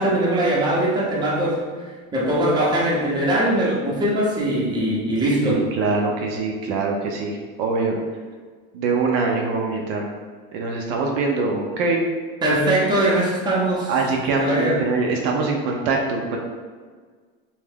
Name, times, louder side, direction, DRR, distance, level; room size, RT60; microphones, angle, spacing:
voice 1, 0.0-1.6 2.1-5.7 12.4-13.9 14.4-14.8, right 1 dB, 15° right, -4 dB, 0.7 m, -21 dB
voice 2, 5.3-8.0 8.7-10.0 10.5-12.0 13.9-16.4, right 3 dB, 65° right, 0 dB, 0.5 m, -23 dB
2.5 x 2.3 x 3.4 m, 1.5 s
supercardioid pair, 120°, 30 cm